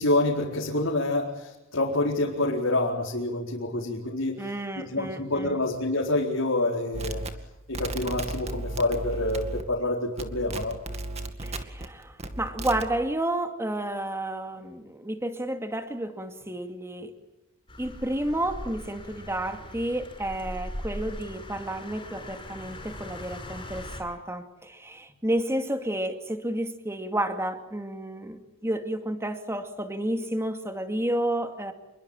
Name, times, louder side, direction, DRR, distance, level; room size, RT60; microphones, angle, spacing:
voice 1, 0.0-4.4 4.8-7.2 7.7-10.8, left 2 dB, 75° left, -3 dB, 4.5 m, -27 dB
voice 2, 4.4-5.6 11.4-17.1 17.8-31.7, right 1 dB, 15° right, 7 dB, 2.5 m, -31 dB
sound 1, 6.9-9.9 10.2-11.9 12.2-12.9, right 2 dB, 30° right, 2.2 m, -35 dB
sound 2, 17.7-24.0, left 1 dB, 25° left, 6.8 m, -40 dB
28.0 x 22.5 x 9.1 m, 0.97 s
head